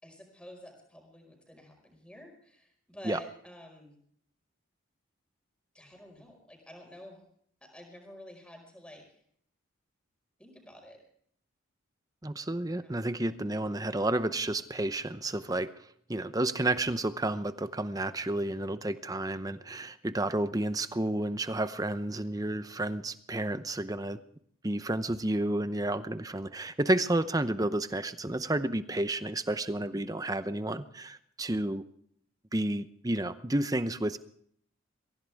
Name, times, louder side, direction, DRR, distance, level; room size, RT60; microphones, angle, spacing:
voice 1, 0.0-3.9 5.7-7.2 7.6-9.2 10.4-11.0 12.7-13.0, equal, 5° left, 2 dB, 5.0 m, -50 dB
voice 2, 12.2-15.7 16.1-24.2 24.6-31.8 32.5-34.2, right 1 dB, 15° right, 12 dB, 0.8 m, -31 dB
23.5 x 16.5 x 3.5 m, 0.64 s
head